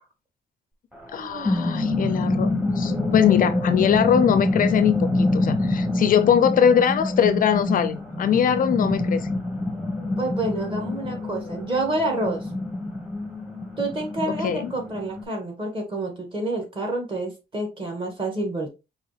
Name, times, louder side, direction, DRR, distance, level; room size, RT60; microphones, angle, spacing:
sound 1, 1.0-15.2, left 2 dB, 5° right, 1.0 m, -26 dB
voice 1, 1.1-9.3 14.4-14.7, left 8 dB, 55° left, 0.4 m, -21 dB
voice 2, 10.2-12.5 13.8-18.7, right 2 dB, 30° right, 1.6 m, -28 dB
4.7 x 2.8 x 3.2 m
cardioid pair, 145°, 17 cm